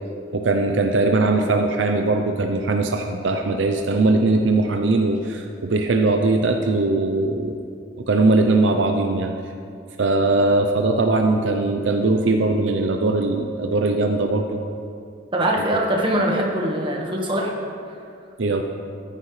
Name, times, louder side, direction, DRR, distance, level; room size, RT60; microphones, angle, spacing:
voice 1, 0.3-7.6 8.0-9.3 10.0-14.6 18.4-18.6, right 2 dB, 70° right, 4 dB, 0.6 m, -20 dB
voice 2, 15.3-17.5, right 1 dB, 25° right, -1 dB, 1.4 m, -22 dB
14.0 x 9.7 x 3.3 m, 2.4 s
head